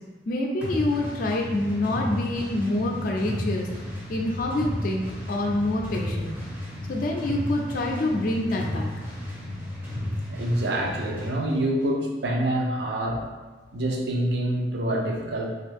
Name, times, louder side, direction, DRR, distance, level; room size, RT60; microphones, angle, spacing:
voice 1, 0.3-3.7 4.1-6.3 6.9-8.9, left 1 dB, 50° left, 0 dB, 0.3 m, -26 dB
sound 1, 0.6-11.4, left 1 dB, 10° right, 0.5 m, -33 dB
voice 2, 10.3-13.2 13.7-15.5, right 1 dB, 65° right, 0 dB, 0.4 m, -26 dB
2.6 x 2.3 x 3.4 m, 1.3 s
head